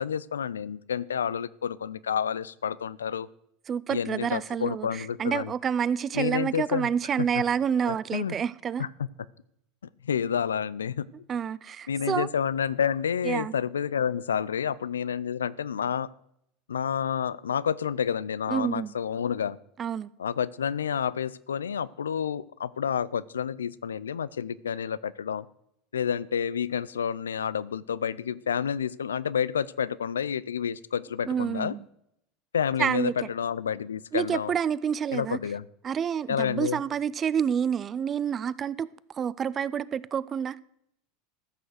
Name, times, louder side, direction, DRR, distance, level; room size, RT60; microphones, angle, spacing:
voice 1, 0.0-3.3 3.9-5.5 6.1-6.9 7.3-7.4 7.9-8.4 8.8-8.9 10.0-11.1 11.9-16.1 16.7-19.6 20.2-25.5 25.9-31.7 32.5-34.5 35.1-35.7 36.3-36.8, left 8 dB, 90° left, 0.4 m, -29 dB
voice 2, 3.7-8.8 11.3-12.3 13.2-13.5 18.5-18.9 19.8-20.1 31.3-31.8 32.8-33.1 34.1-35.4 35.8-38.9 39.1-40.6, right 7 dB, 35° right, 0.4 m, -28 dB
14.0 x 6.3 x 6.5 m
hypercardioid pair, 90°, 0 cm